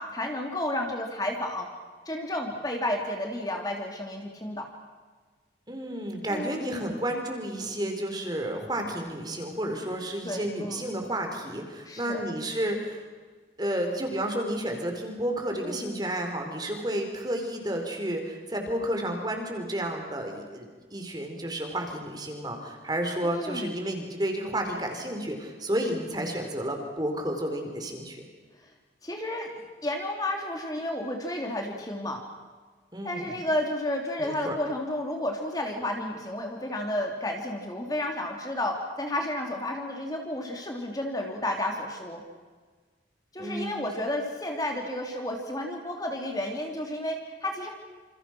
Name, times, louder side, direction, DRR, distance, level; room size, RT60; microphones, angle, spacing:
voice 1, 0.0-1.7 2.0-4.7 6.3-7.0 10.2-10.9 11.9-12.2 15.6-16.0 23.2-23.7 29.0-29.5 29.8-32.2 33.0-42.2 43.3-47.7, left 1 dB, 20° left, 2 dB, 3.1 m, -32 dB
voice 2, 5.7-13.0 13.6-28.2 32.9-33.4 34.2-34.5 43.4-43.8, right 1 dB, 20° right, 3 dB, 4.6 m, -31 dB
28.5 x 28.5 x 6.2 m, 1.4 s
head